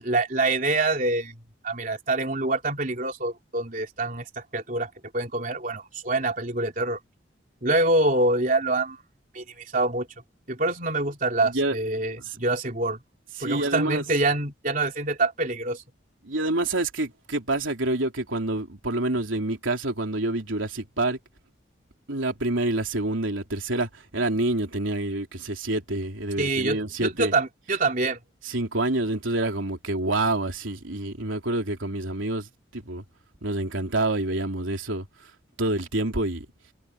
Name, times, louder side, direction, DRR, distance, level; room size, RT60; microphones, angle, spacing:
voice 1, 0.0-1.4 1.6-7.0 7.6-9.0 9.3-10.1 10.5-13.0 13.4-15.8 26.4-28.2, right 2 dB, 45° right, 3.5 m, -25 dB
voice 2, 11.4-11.8 12.2-12.4 13.4-14.0 16.2-21.2 22.1-27.3 28.4-33.0 33.4-35.3 35.6-36.5, right 2 dB, 90° right, 3.6 m, -27 dB
head